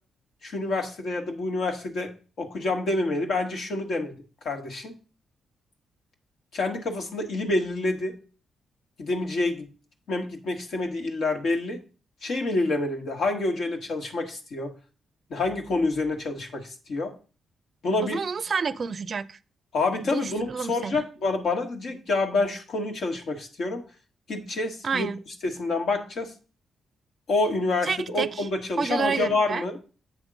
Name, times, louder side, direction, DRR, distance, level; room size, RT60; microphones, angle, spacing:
voice 1, 0.4-2.1 2.4-4.2 4.4-5.0 6.5-8.1 9.0-9.7 10.1-11.8 12.2-14.7 15.3-17.1 17.8-18.2 19.7-23.8 24.3-25.1 25.4-26.3 27.3-29.8, left 2 dB, 70° left, 1.6 m, -27 dB
voice 2, 18.0-19.4 20.0-21.0 24.8-25.2 27.8-28.5 28.8-29.7, right 5 dB, 55° right, 0.4 m, -29 dB
7.7 x 3.6 x 6.2 m
supercardioid pair, 50°, 0 cm